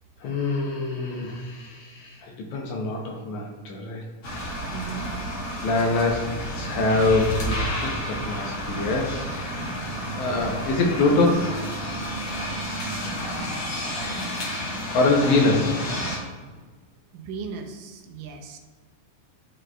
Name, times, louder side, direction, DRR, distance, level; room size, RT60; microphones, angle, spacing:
voice 1, 0.2-4.0 5.6-9.6 10.2-11.6 14.9-15.8, left 3 dB, 75° left, 0 dB, 1.9 m, -24 dB
sound 1, 4.2-16.2, equal, 60° left, 1.4 m, -30 dB
voice 2, 4.7-5.1 17.1-18.6, right 5 dB, 80° right, 4 dB, 2.2 m, -37 dB
11.0 x 3.8 x 2.2 m, 1.4 s
omnidirectional pair, 3.9 m